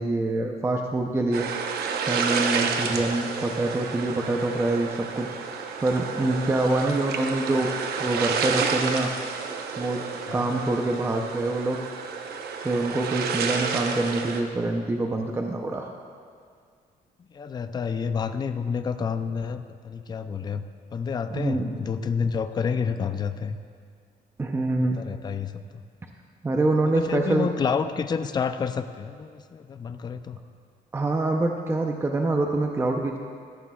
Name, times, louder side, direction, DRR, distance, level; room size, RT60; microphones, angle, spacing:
voice 1, 0.0-1.5 2.1-7.7 8.0-9.1 9.8-10.0 10.3-11.8 12.6-15.9 21.3-21.8 24.4-25.0 26.4-27.5 30.9-33.2, right 2 dB, 15° right, 2 dB, 0.6 m, -25 dB
sound 1, 1.3-14.4, right 5 dB, 80° right, 0.9 m, -30 dB
voice 2, 17.2-20.6 20.9-23.6 24.8-25.8 26.9-30.4, left 6 dB, 25° left, 9 dB, 0.4 m, -29 dB
17.5 x 14.0 x 2.4 m, 2.1 s
cardioid pair, 155°, 16 cm